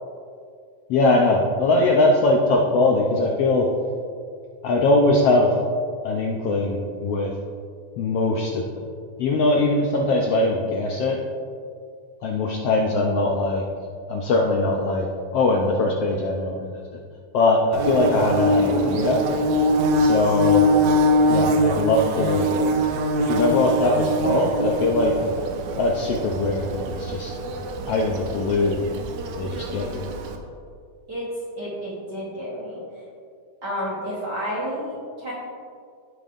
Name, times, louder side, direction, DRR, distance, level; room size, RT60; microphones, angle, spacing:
voice 1, 0.9-3.7 4.6-5.6 6.0-7.3 8.0-8.8 9.2-11.2 12.2-13.6 14.1-15.1 15.3-16.8 17.3-19.2 20.0-20.7 21.3-22.5 23.2-25.2 25.8-27.3 27.9-28.9 29.4-30.1, left 2 dB, 75° left, -1 dB, 1.4 m, -21 dB
Bird / Buzz, 17.7-30.4, equal, 80° right, 2.0 m, -23 dB
voice 2, 31.6-32.8 33.6-35.3, equal, 50° right, -6 dB, 1.4 m, -30 dB
15.0 x 5.3 x 2.5 m, 2.2 s
omnidirectional pair, 3.4 m